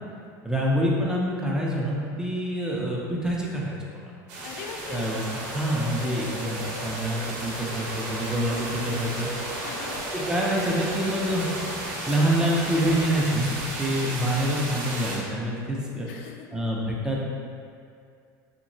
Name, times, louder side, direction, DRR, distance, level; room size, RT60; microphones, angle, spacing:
voice 1, 0.4-3.8 4.9-9.3 10.1-11.5 12.1-13.5 13.8-16.1 16.5-17.3, equal, 5° right, -4 dB, 0.5 m, -26 dB
sound 1, 4.3-15.2, right 2 dB, 80° right, 0.7 m, -35 dB
voice 2, 4.4-5.1 9.6-10.0 13.9-14.2 16.1-16.5, left 5 dB, 70° left, 2 dB, 0.4 m, -40 dB
Traffic noise roadway noise, 4.8-13.0, left 1 dB, 40° left, 0.8 m, -38 dB
3.0 x 2.7 x 2.6 m, 2.3 s
supercardioid pair, 105°, 10 cm